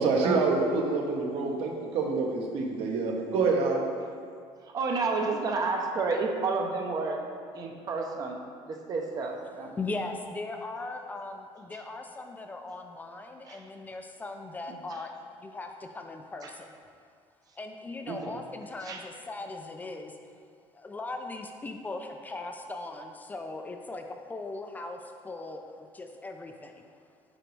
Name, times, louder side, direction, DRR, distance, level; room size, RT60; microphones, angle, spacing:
voice 1, 0.0-3.9, right 3 dB, 70° right, 0 dB, 1.0 m, -27 dB
voice 2, 4.7-7.2 7.5-8.4 8.9-9.7 18.1-18.2 18.9-19.0, right 4 dB, 35° right, 2 dB, 0.6 m, -30 dB
voice 3, 9.7-15.1 15.4-16.7 17.6-20.2 20.7-26.9, left 2 dB, 15° left, 4 dB, 0.3 m, -39 dB
7.7 x 5.0 x 3.2 m, 2.2 s
cardioid pair, 155°, 11 cm